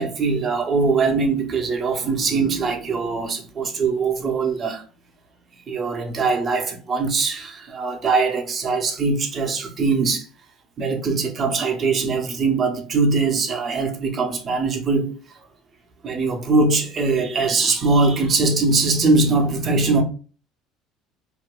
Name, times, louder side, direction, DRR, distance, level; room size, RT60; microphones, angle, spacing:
voice 1, 0.0-4.8 5.7-10.3 10.8-15.1 16.0-20.0, right 3 dB, 45° right, 0.8 m, -21 dB
2.8 x 2.3 x 3.5 m
supercardioid pair, 80°, 0 cm